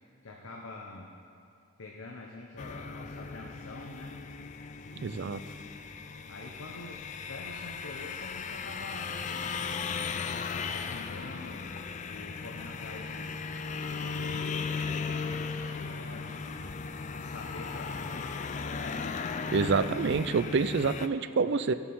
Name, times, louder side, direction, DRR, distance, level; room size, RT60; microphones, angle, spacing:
voice 1, 0.2-1.2 1.8-4.2 4.8-5.8 6.3-13.4 14.0-16.8 17.1-19.1, left 2 dB, 70° left, 0 dB, 0.8 m, -46 dB
sound 1, 2.6-21.1, left 5 dB, 35° left, 0.3 m, -37 dB
voice 2, 5.0-5.4 19.5-21.7, right 4 dB, 50° right, 13 dB, 0.4 m, -27 dB
14.5 x 7.1 x 5.5 m, 2.5 s
head